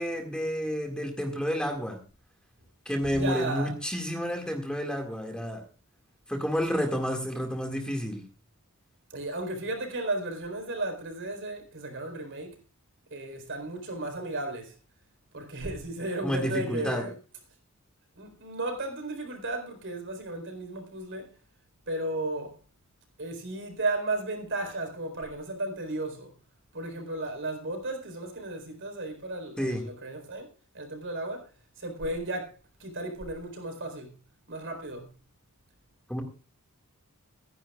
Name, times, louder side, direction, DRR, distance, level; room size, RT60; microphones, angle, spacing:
voice 1, 0.0-2.0 2.9-5.6 6.3-8.2 16.2-17.1 29.6-29.8 36.1-36.2, equal, 5° left, 2.1 m, -30 dB
voice 2, 3.1-3.7 6.7-7.0 9.1-12.6 13.1-14.8 15.3-17.1 18.2-21.3 21.9-22.6 23.2-26.3 26.7-30.5 30.7-34.1 34.5-35.1, right 2 dB, 60° right, 4.2 m, -34 dB
25.5 x 10.5 x 2.4 m
head